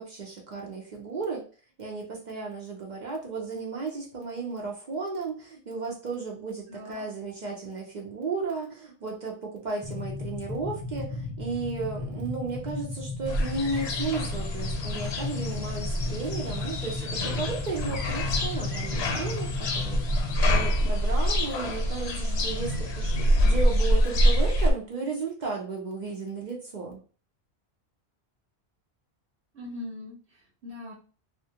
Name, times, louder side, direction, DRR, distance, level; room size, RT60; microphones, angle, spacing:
voice 1, 0.0-1.4 1.8-27.0, right 4 dB, 55° right, 0 dB, 0.5 m, -34 dB
voice 2, 6.7-7.0 22.1-22.5 29.5-30.9, left 1 dB, 85° right, -3 dB, 1.0 m, -41 dB
sound 1, 9.8-20.7, left 3 dB, 10° left, 0.4 m, -35 dB
sound 2, 13.3-24.7, equal, 80° left, 0.8 m, -26 dB
2.3 x 2.1 x 2.7 m, 0.38 s
omnidirectional pair, 1.1 m